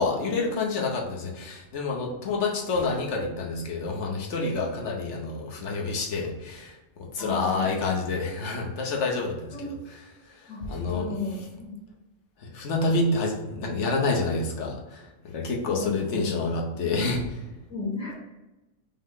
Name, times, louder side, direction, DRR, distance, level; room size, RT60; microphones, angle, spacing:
voice 1, 0.0-9.8 10.3-11.1 12.4-17.4, left 3 dB, 60° left, 0 dB, 1.1 m, -28 dB
voice 2, 7.2-7.8 9.5-9.7 10.5-11.8 15.6-16.7 17.7-18.2, left 3 dB, 85° left, -11 dB, 2.2 m, -35 dB
5.5 x 2.1 x 3.7 m, 1.0 s
omnidirectional pair, 1.4 m